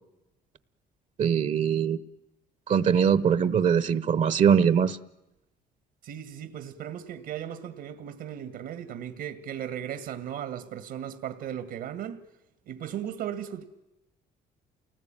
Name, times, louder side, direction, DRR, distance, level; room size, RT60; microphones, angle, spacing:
voice 1, 1.2-2.0 2.7-5.0, right 7 dB, 45° right, 1.0 m, -22 dB
voice 2, 6.0-12.3 12.7-13.6, right 10 dB, 75° right, 1.8 m, -36 dB
28.5 x 19.5 x 9.0 m
cardioid pair, 110°, 17 cm